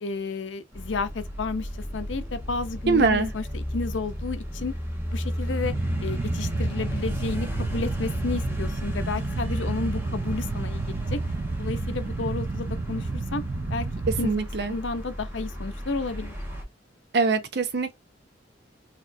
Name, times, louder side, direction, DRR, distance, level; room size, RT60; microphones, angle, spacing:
voice 1, 0.0-4.7 5.1-5.7 6.0-11.2 11.6-13.4 13.7-13.9 14.2-14.3 14.7-16.3, left 3 dB, 85° left, 0.6 m, -32 dB
sound 1, 0.7-16.6, equal, 15° right, 1.1 m, -33 dB
voice 2, 2.9-3.3 14.2-14.7 17.1-17.9, right 4 dB, 60° right, 0.8 m, -23 dB
sound 2, 5.6-14.3, right 3 dB, 40° right, 0.4 m, -31 dB
4.2 x 2.8 x 2.6 m
head